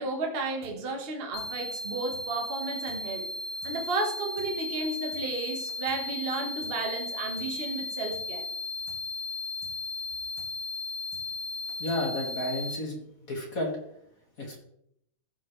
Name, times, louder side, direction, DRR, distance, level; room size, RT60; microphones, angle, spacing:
voice 1, 0.0-3.3 3.6-8.4, right 3 dB, 90° right, 0.5 m, -33 dB
sound 1, 0.6-0.7 1.0-1.1 1.4-1.5 1.7-1.8 2.1-2.2 2.5-2.6 2.9-3.0 3.2-3.3 3.6-3.7 4.0-4.1 4.4-4.5 4.7-4.8 5.1-5.2 5.5-6.0 6.2-6.3 6.6-6.7 7.0-7.1 7.4-7.5 7.7-7.8 8.1-8.2 8.5-8.6 8.9-9.0 9.2-9.3 9.6-9.7 10.0-10.1 10.4-10.5 10.7-10.8 11.1-11.2 11.5-12.0 12.2-12.3, left 3 dB, 5° left, 1.4 m, -53 dB
sound 2, 1.3-12.8, left 2 dB, 70° left, 1.8 m, -36 dB
voice 2, 11.8-13.7 14.4-14.6, left 1 dB, 35° left, 1.6 m, -32 dB
16.0 x 5.7 x 3.2 m
omnidirectional pair, 3.7 m